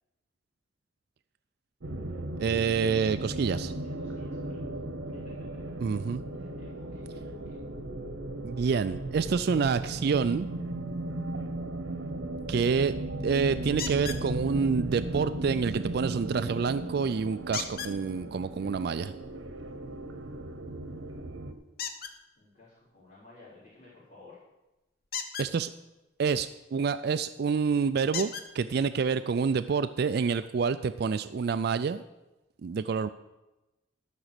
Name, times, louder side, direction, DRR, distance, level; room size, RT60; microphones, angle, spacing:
sound 1, 1.8-21.5, right 1 dB, 85° right, 1.0 m, -36 dB
voice 1, 2.4-3.7 5.8-6.2 8.4-10.5 12.5-12.9 13.2-19.1 25.4-25.7 26.2-32.0 32.6-33.1, right 5 dB, 55° right, 12 dB, 0.3 m, -27 dB
voice 2, 3.8-4.6 5.1-5.3 6.4-7.5 22.4-24.4, left 3 dB, 35° left, -12 dB, 4.0 m, -55 dB
sound 2, 13.8-14.2 17.5-18.0 21.8-22.1 25.0-25.5 27.2-27.3 28.1-28.5 29.5-29.6 30.1-30.2, left 7 dB, 50° left, 0.8 m, -35 dB
13.0 x 6.0 x 6.7 m, 1.0 s
head